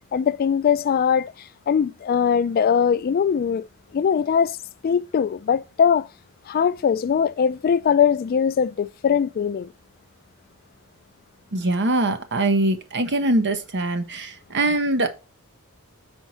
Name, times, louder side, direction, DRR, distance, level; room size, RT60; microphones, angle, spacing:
voice 1, 0.1-3.7 3.9-4.6 4.8-6.1 6.5-9.7, left 7 dB, 45° left, 0.3 m, -21 dB
voice 2, 11.5-15.1, right 2 dB, 55° right, 1.0 m, -22 dB
4.5 x 4.5 x 5.5 m
head